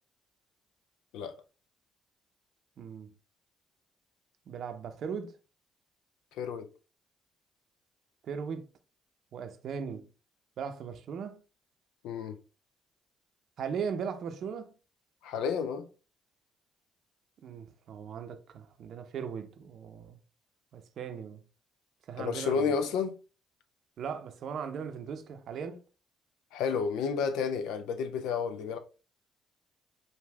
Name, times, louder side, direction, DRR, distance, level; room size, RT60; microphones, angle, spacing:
voice 1, 2.8-3.1 4.5-5.3 8.3-8.7 9.3-10.1 10.6-11.4 13.6-14.7 17.4-20.2 20.7-21.4 22.1-22.8 24.0-25.8, right 6 dB, 55° right, 0.6 m, -38 dB
voice 2, 6.3-6.7 12.0-12.4 15.2-15.8 22.2-23.2 26.5-28.8, left 6 dB, 65° left, 0.5 m, -31 dB
5.0 x 2.5 x 3.3 m
figure-of-eight pair, 45°, 0 cm